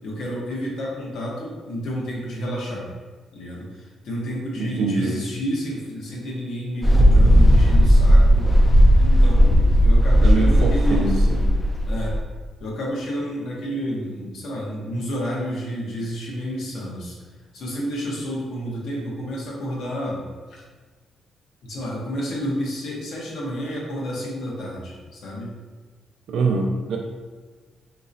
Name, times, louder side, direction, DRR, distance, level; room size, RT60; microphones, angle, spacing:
voice 1, 0.0-2.9 3.3-8.5 9.0-11.2 11.9-12.2 12.6-17.2 17.5-20.6 21.6-25.5, equal, 70° left, -4 dB, 1.0 m, -30 dB
voice 2, 4.6-5.2 10.2-11.4 26.3-27.0, right 3 dB, 70° right, 1 dB, 0.3 m, -24 dB
Mechanical fan, 6.8-12.2, equal, 5° left, 0.4 m, -15 dB
3.9 x 2.9 x 2.6 m, 1.4 s
cardioid pair, 125°, 0 cm